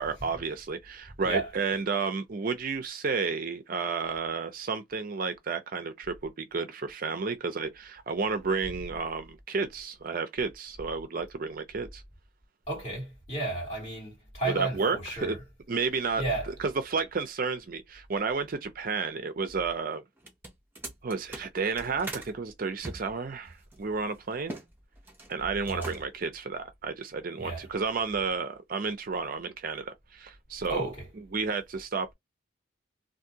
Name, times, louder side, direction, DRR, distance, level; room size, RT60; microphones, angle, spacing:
voice 1, 0.0-12.0 14.5-15.4 15.7-16.2 16.6-20.0 21.0-24.6 25.3-30.9 31.3-32.1, right 4 dB, 40° right, 0.4 m, -31 dB
voice 2, 12.7-15.4 16.2-16.5 25.7-25.9 27.4-27.7 30.7-31.1, right 2 dB, 30° left, 2.6 m, -33 dB
sound 1, 20.2-22.3 22.8-24.7 25.0-25.3 25.6-26.3, right 2 dB, 10° right, 0.7 m, -42 dB
3.5 x 2.5 x 2.7 m
head